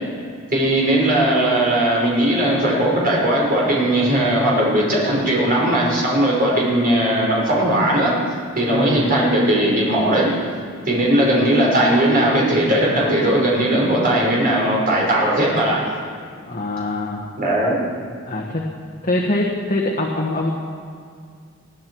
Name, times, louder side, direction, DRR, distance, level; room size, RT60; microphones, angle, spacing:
voice 1, 0.5-8.1 8.6-10.3 10.8-15.8 17.4-17.7, right 1 dB, 45° right, -4 dB, 4.8 m, -18 dB
voice 2, 8.7-9.1 16.4-17.2 18.3-18.7 19.0-20.5, left 2 dB, 40° left, -1 dB, 1.4 m, -23 dB
21.5 x 14.0 x 4.7 m, 2.1 s
head